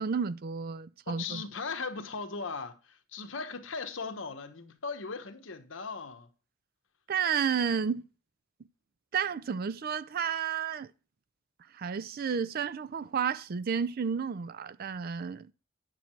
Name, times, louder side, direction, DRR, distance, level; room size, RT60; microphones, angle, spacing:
voice 1, 0.0-1.4 7.1-8.0 9.1-10.9 11.7-15.5, right 6 dB, 50° right, 0.4 m, -31 dB
voice 2, 1.1-6.3, left 4 dB, 70° left, 1.2 m, -38 dB
9.5 x 6.4 x 4.5 m
head